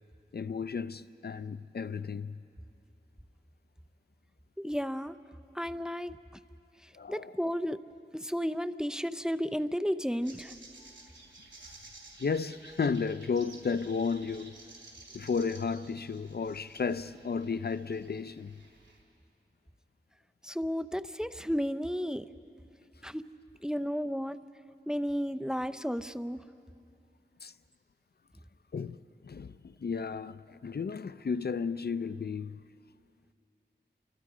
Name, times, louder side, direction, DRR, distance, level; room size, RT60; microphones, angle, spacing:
voice 1, 0.3-2.4 7.0-7.4 11.6-11.8 12.2-14.6 15.1-18.6 27.4-27.5 28.7-29.0 29.2-32.6, left 5 dB, 60° left, 0.5 m, -33 dB
voice 2, 4.6-5.2 5.5-6.1 7.1-7.8 8.1-10.5 20.4-22.3 23.0-23.2 23.6-24.4 24.9-26.4, equal, 5° right, 0.6 m, -33 dB
sound 1, 10.2-19.0, right 2 dB, 90° right, 3.8 m, -53 dB
29.5 x 24.5 x 5.0 m
wide cardioid pair, 55°, 19 cm